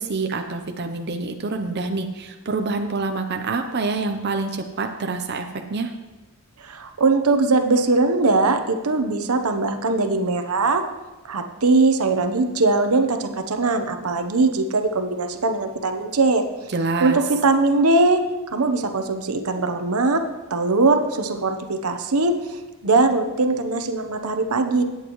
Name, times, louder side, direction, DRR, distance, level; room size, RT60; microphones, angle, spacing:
voice 1, 0.0-5.9 16.7-17.2, right 3 dB, 50° right, 5 dB, 0.7 m, -26 dB
voice 2, 6.6-10.8 11.2-16.4 17.0-18.2 18.5-20.2 20.5-24.8, right 3 dB, 85° right, 7 dB, 0.9 m, -21 dB
18.0 x 8.3 x 3.1 m, 1.1 s
head